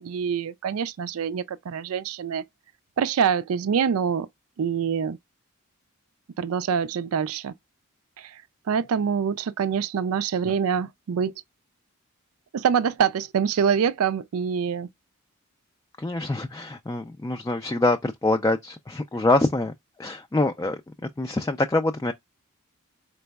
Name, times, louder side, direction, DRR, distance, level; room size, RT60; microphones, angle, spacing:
voice 1, 0.0-2.4 3.0-4.3 4.6-5.2 6.4-7.5 8.2-8.4 8.7-11.3 12.5-14.9, right 7 dB, 75° right, 0.4 m, -25 dB
voice 2, 16.0-19.7 20.0-20.8 21.2-22.1, left 2 dB, 15° left, 0.3 m, -25 dB
4.3 x 3.9 x 2.2 m
head